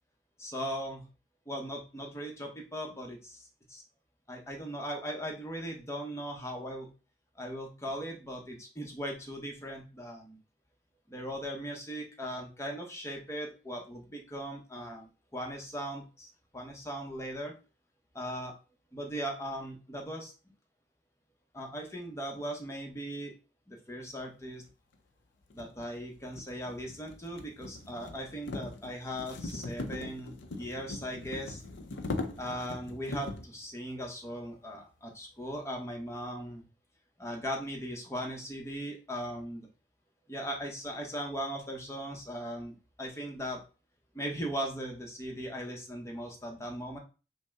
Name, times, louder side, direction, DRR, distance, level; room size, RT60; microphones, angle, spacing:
voice 1, 0.4-1.0 1.5-3.8 4.3-6.9 7.4-10.4 11.1-17.5 18.1-18.5 18.9-20.3 21.5-23.3 23.7-24.6 25.5-31.6 32.4-36.7 37.2-39.7 40.3-43.6 44.1-47.0, equal, 15° left, 1 dB, 0.8 m, -39 dB
sound 1, 24.7-24.8 25.5-33.5, left 2 dB, 85° left, 0.5 m, -40 dB
5.3 x 2.1 x 3.5 m, 0.33 s
head